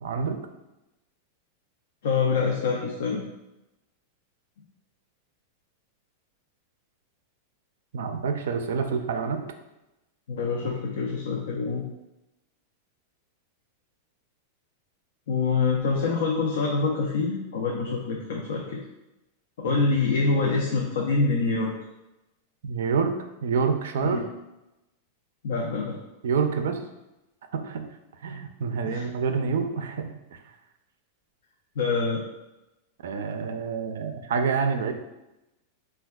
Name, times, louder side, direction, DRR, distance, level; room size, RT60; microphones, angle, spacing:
voice 1, 0.0-0.4 7.9-9.4 19.7-19.8 22.6-23.1 23.4-24.2 26.2-26.8 27.5-27.9 28.2-30.1 33.0-34.9, right 5 dB, 80° right, 7 dB, 0.3 m, -27 dB
voice 2, 2.0-3.2 10.3-11.8 15.3-18.8 19.6-21.7 24.0-24.2 25.4-26.0 28.8-29.0 31.8-32.2, left 4 dB, 75° left, -2 dB, 0.4 m, -25 dB
4.3 x 2.2 x 2.3 m, 0.97 s
supercardioid pair, 180°, 0 cm